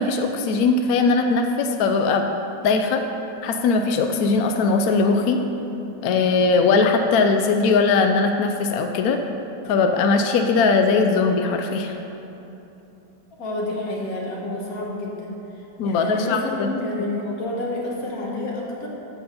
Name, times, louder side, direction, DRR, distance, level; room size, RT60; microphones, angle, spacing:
voice 1, 0.0-2.2 2.6-3.0 3.4-5.4 6.0-9.2 9.7-11.9 15.8-16.7, left 4 dB, 75° left, 5 dB, 0.8 m, -20 dB
voice 2, 13.4-15.3 15.8-18.9, left 2 dB, 50° left, -3 dB, 1.7 m, -29 dB
7.1 x 6.1 x 6.8 m, 2.9 s
omnidirectional pair, 2.1 m